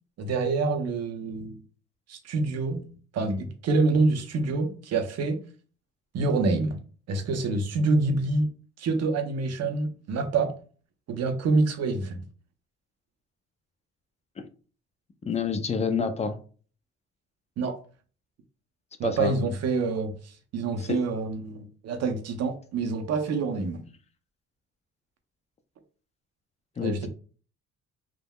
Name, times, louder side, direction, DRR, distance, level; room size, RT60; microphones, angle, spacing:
voice 1, 0.2-1.6 2.1-2.8 3.1-5.4 6.1-6.8 7.1-8.5 8.8-10.5 11.1-12.2 17.6-17.8 19.0-20.1 20.5-23.8 26.8-27.1, right 3 dB, 55° right, 7 dB, 0.6 m, -26 dB
voice 2, 15.3-16.4 19.0-19.3 20.8-21.0 26.8-27.1, left 5 dB, 20° left, 8 dB, 0.4 m, -28 dB
3.5 x 2.1 x 2.2 m, 0.40 s
cardioid pair, 90°, 30 cm